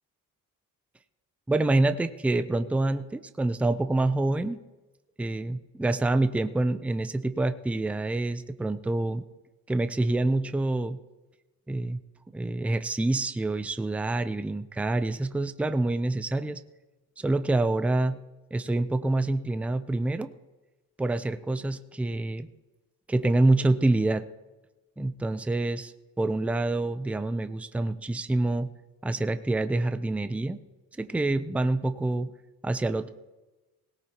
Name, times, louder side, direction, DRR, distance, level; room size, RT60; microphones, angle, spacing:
voice 1, 1.5-4.6 5.2-9.2 9.7-11.0 11.7-12.0 12.3-16.6 17.2-18.2 18.5-20.3 21.0-22.5 23.1-24.3 25.0-28.7 29.0-30.6 31.0-32.3 32.6-33.1, right 2 dB, 5° right, 10 dB, 0.4 m, -26 dB
21.0 x 17.5 x 2.9 m, 1.1 s
cardioid pair, 130°, 37 cm